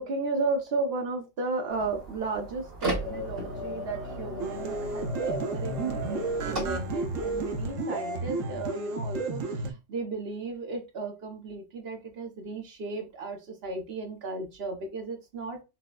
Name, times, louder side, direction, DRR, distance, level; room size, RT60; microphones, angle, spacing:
voice 1, 0.0-15.6, right 3 dB, 55° right, 4 dB, 1.0 m, -34 dB
sound 1, 1.7-7.7, right 1 dB, 70° right, 2.1 m, -36 dB
sound 2, 4.4-9.7, right 3 dB, 90° right, 1.1 m, -32 dB
5.9 x 2.1 x 2.3 m, 0.26 s
omnidirectional pair, 1.3 m